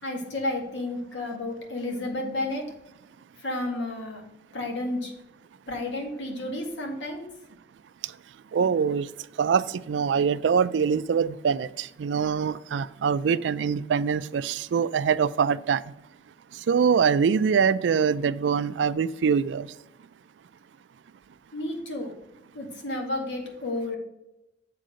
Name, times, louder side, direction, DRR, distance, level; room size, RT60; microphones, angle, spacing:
voice 1, 0.0-2.6 3.4-4.2 4.5-5.1 5.7-7.2 21.5-22.1 22.5-24.0, left 2 dB, 90° left, 1 dB, 1.9 m, -31 dB
voice 2, 8.5-9.1 9.4-15.8 16.5-19.7, right 6 dB, 85° right, 17 dB, 0.4 m, -24 dB
7.7 x 3.8 x 6.4 m, 0.91 s
head